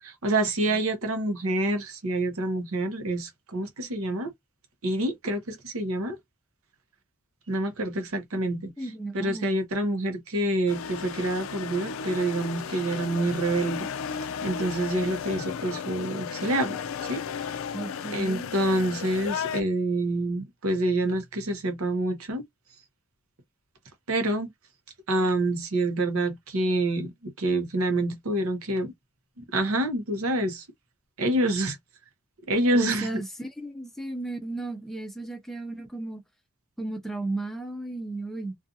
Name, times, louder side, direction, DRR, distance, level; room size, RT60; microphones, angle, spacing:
voice 1, 0.0-4.3 4.8-6.2 7.5-8.7 9.1-13.9 14.4-16.8 17.1-17.2 18.1-22.4 24.1-24.5 25.1-28.9 29.4-30.6 31.2-31.8 32.5-33.1, right 1 dB, 70° right, 0.8 m, -27 dB
voice 2, 8.8-9.6 17.7-18.5 32.7-36.2 36.8-38.6, right 2 dB, ahead, 0.5 m, -34 dB
sound 1, 10.7-19.6, left 7 dB, 65° left, 0.3 m, -34 dB
2.5 x 2.3 x 2.6 m
head